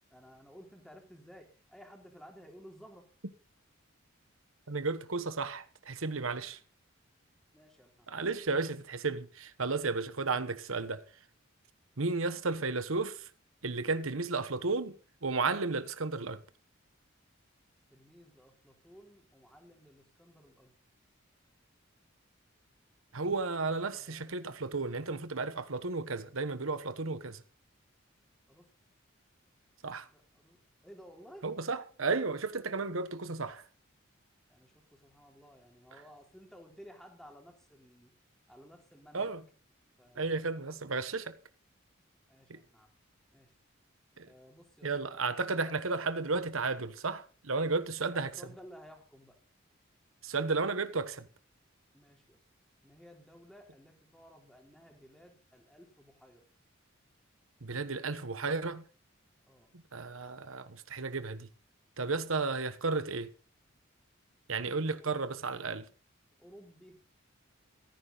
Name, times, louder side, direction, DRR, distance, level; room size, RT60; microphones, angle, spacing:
voice 1, 0.1-3.1 7.5-8.2 17.9-20.8 23.8-24.6 28.5-28.7 30.1-30.6 30.8-31.5 34.5-38.1 38.5-39.4 40.0-40.7 42.3-42.9 43.3-43.6 44.2-44.9 45.4-45.9 48.1-49.4 51.9-52.4 52.8-56.5 59.4-59.7 64.9-65.1 66.4-67.0, equal, ahead, 3.7 m, -55 dB
voice 2, 4.7-6.6 8.1-11.1 12.0-13.3 13.6-16.4 23.1-27.4 29.8-30.1 31.4-33.6 39.1-39.4 40.1-41.4 42.5-42.6 44.2-44.3 44.8-48.3 50.2-51.3 57.6-58.8 59.7-61.5 62.0-63.3 64.5-65.9, right 3 dB, 85° right, 1.2 m, -33 dB
15.5 x 14.5 x 4.1 m
head